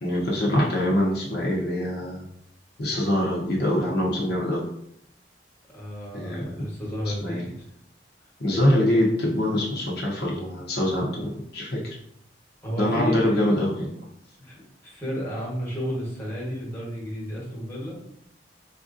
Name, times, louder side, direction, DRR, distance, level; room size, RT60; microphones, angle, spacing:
voice 1, 0.0-2.2 2.8-4.7 6.1-6.5 7.2-7.4 8.4-12.0 12.8-13.9, left 1 dB, 60° left, -3 dB, 0.7 m, -24 dB
voice 2, 5.7-7.5 12.6-13.4 14.4-18.0, equal, 10° left, -5 dB, 1.1 m, -32 dB
4.3 x 2.5 x 2.5 m, 0.74 s
head